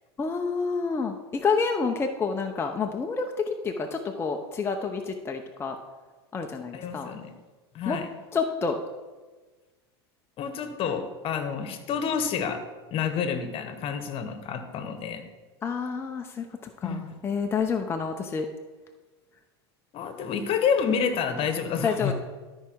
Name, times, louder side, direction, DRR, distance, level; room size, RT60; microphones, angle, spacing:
voice 1, 0.2-5.8 6.3-7.1 7.9-8.0 8.3-8.8 15.6-18.5 21.8-22.1, left 5 dB, 15° left, 3 dB, 0.7 m, -28 dB
voice 2, 6.7-7.3 7.7-8.1 10.4-12.6 12.9-15.2 16.8-17.1 19.9-22.1, left 6 dB, 40° left, 8 dB, 1.3 m, -29 dB
12.5 x 4.8 x 4.6 m, 1.3 s
hypercardioid pair, 110°, 14 cm